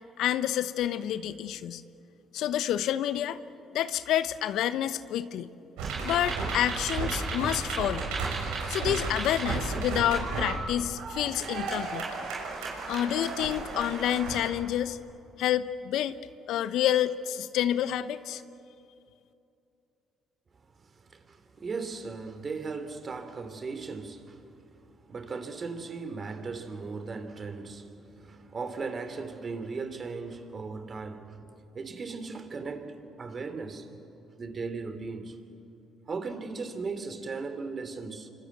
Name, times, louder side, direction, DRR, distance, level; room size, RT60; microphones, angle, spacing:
voice 1, 0.2-1.8 2.3-3.4 3.7-5.5 6.0-8.0 8.7-12.0 12.9-15.0 15.4-16.2 16.5-18.4, left 11 dB, 70° left, 0.9 m, -28 dB
sound 1, 5.8-14.5, right 4 dB, 80° right, 6.1 m, -33 dB
voice 2, 20.6-24.4 25.0-31.4 31.7-33.9 34.4-35.4 36.1-38.3, right 4 dB, 45° right, 3.1 m, -37 dB
28.0 x 25.0 x 8.2 m
hypercardioid pair, 50°, 0 cm